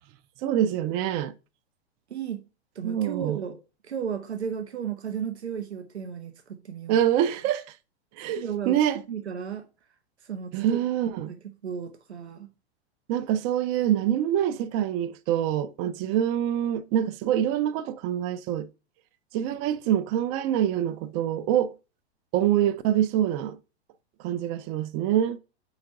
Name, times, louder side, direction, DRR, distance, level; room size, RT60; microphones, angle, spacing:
voice 1, 0.4-1.3 2.8-3.4 6.9-7.6 8.2-9.0 10.5-11.3 13.1-18.7 19.3-21.7 22.3-23.6 24.2-25.4, right 11 dB, 35° right, 0.5 m, -25 dB
voice 2, 2.1-2.4 2.7-7.0 8.4-8.8 9.1-9.7 10.2-10.8 11.3-11.4 11.6-12.5, right 7 dB, 80° right, 0.7 m, -34 dB
4.3 x 4.0 x 5.6 m
figure-of-eight pair, 100°, 32 cm